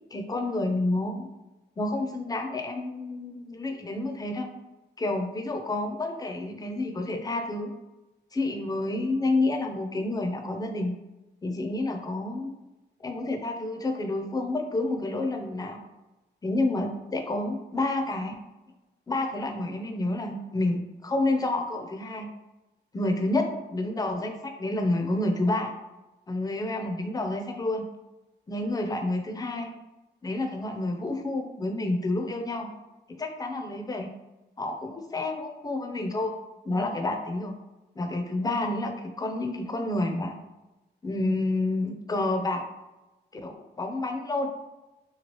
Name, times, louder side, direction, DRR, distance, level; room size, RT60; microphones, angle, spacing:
voice 1, 0.1-1.3 1.8-4.5 5.0-7.7 8.3-11.0 11.4-12.5 13.0-15.8 16.4-18.3 19.1-22.3 22.9-25.8 26.3-27.8 28.5-29.7 30.2-32.7 33.1-34.1 34.6-36.3 36.6-37.5 38.0-40.4 41.0-42.6 43.3-44.5, left 2 dB, 20° left, 4 dB, 0.4 m, -29 dB
3.0 x 2.4 x 3.0 m, 1.0 s
cardioid pair, 85°, 19 cm